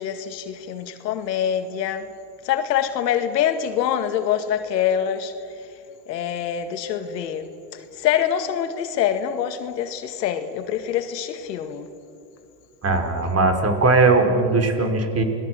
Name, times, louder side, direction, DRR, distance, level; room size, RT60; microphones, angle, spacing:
voice 1, 0.0-2.0 2.4-5.3 6.1-11.9, left 9 dB, 85° left, 2.0 m, -25 dB
voice 2, 12.8-15.2, right 3 dB, 30° right, 5.0 m, -19 dB
29.0 x 20.5 x 7.8 m
hypercardioid pair, 90°, 49 cm